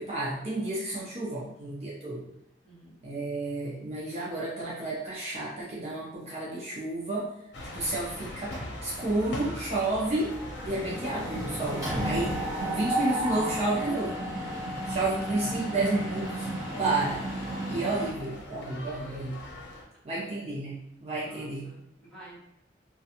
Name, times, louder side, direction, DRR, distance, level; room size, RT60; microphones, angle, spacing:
voice 1, 0.0-2.3 3.0-7.3 7.6-10.4 10.6-14.2 14.8-16.5 16.8-17.3 17.7-19.4 20.0-21.7, right 2 dB, 35° right, -6 dB, 0.5 m, -31 dB
voice 2, 2.6-3.0 10.8-11.1 15.1-15.4 20.1-20.2 21.2-22.4, right 2 dB, 5° left, -10 dB, 1.1 m, -50 dB
sound 1, 7.5-19.8, left 1 dB, 75° left, 0.6 m, -42 dB
Mechanisms, 8.5-9.1 9.4-9.7 9.9-18.1, right 1 dB, 20° right, 1.0 m, -33 dB
2.4 x 2.2 x 2.7 m, 0.81 s
head